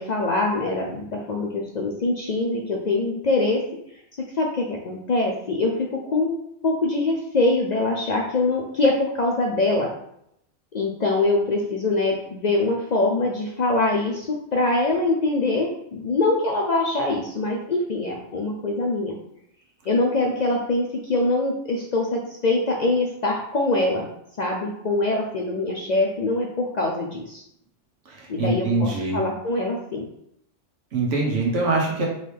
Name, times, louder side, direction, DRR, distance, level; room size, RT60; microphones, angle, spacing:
voice 1, 0.0-3.6 4.4-6.4 6.6-9.9 10.7-19.1 19.9-24.1 24.4-27.4 28.3-30.1, left 2 dB, 55° left, 0 dB, 0.5 m, -23 dB
voice 2, 28.1-29.2 30.9-32.1, right 2 dB, 85° right, -1 dB, 1.4 m, -23 dB
3.8 x 3.1 x 3.3 m, 0.73 s
omnidirectional pair, 1.2 m